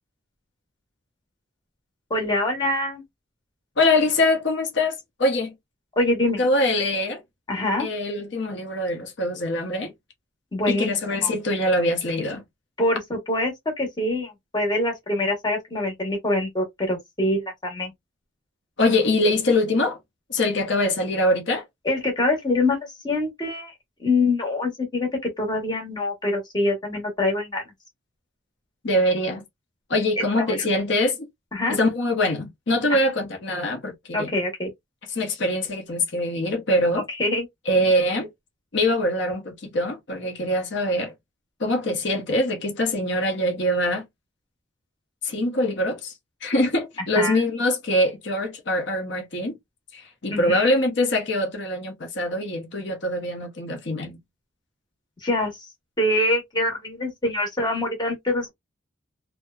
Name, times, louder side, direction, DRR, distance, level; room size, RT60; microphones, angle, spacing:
voice 1, 2.1-3.0 6.0-6.4 7.5-7.9 10.5-10.9 11.2-11.3 12.8-17.9 21.8-23.7 24.0-27.6 30.2-30.3 30.6-30.7 31.5-31.8 32.9-33.0 34.1-34.7 37.1-37.5 47.1-47.4 50.3-50.7 55.2-55.7 56.0-58.5, left 2 dB, 20° left, 0.9 m, -25 dB
voice 2, 3.8-5.5 6.4-7.2 7.8-9.9 10.7-12.4 18.8-20.0 20.3-21.6 28.8-29.4 29.9-31.3 31.7-34.3 35.2-37.0 37.7-38.3 38.7-41.1 41.6-44.1 45.2-46.1 46.4-49.6 49.9-54.2, left 1 dB, 60° left, 0.8 m, -23 dB
2.7 x 2.1 x 2.3 m
head